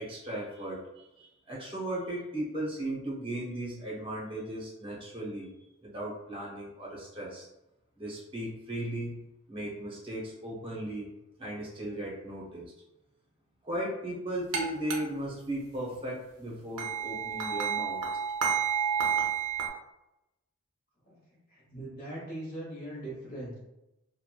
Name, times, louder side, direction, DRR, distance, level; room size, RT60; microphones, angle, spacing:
voice 1, 0.0-5.5 5.8-7.5 8.0-11.1 11.4-12.7 13.6-18.0, right 1 dB, 25° right, -5 dB, 0.7 m, -37 dB
sound 1, 14.5-14.6 14.9-15.0 16.8-19.7, right 7 dB, 90° right, 0.6 m, -30 dB
voice 2, 21.5-23.6, right 1 dB, 40° left, -6 dB, 1.1 m, -40 dB
2.9 x 2.2 x 2.3 m, 0.93 s
head